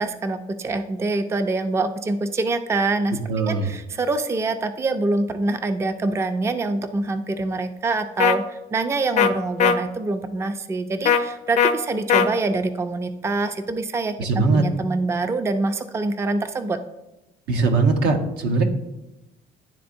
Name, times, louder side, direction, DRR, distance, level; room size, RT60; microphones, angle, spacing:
voice 1, 0.0-3.2 3.5-14.1 14.5-16.8, right 3 dB, 15° right, 9 dB, 0.4 m, -25 dB
voice 2, 3.3-3.7 14.2-14.6 17.5-18.6, right 3 dB, 80° right, 4 dB, 0.9 m, -20 dB
sound 1, 8.2-8.4 9.2-9.3 9.6-9.7 11.1-11.2 11.6-11.7 12.1-12.3, left 7 dB, 45° left, 0.5 m, -17 dB
10.5 x 3.6 x 2.6 m, 0.95 s
cardioid pair, 110°, 17 cm